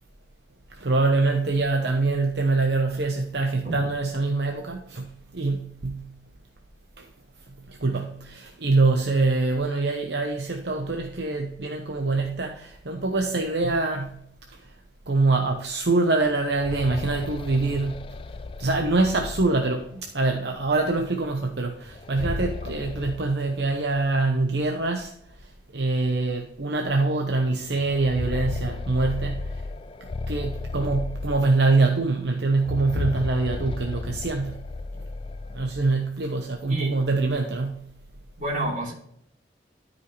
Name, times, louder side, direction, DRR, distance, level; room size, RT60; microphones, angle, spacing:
voice 1, 0.8-6.1 7.0-7.1 7.7-14.2 15.1-18.1 18.6-25.1 25.7-29.6 30.3-34.6 35.5-37.9, right 3 dB, 70° right, 0.9 m, -24 dB
sound 1, 16.3-20.1 21.9-24.1 24.4-24.5 25.4-25.5 25.9-26.1 27.7-31.9 32.5-35.9, left 3 dB, 30° left, 0.3 m, -34 dB
voice 2, 38.4-38.9, right 1 dB, 45° right, 3.3 m, -30 dB
12.5 x 5.4 x 3.2 m
head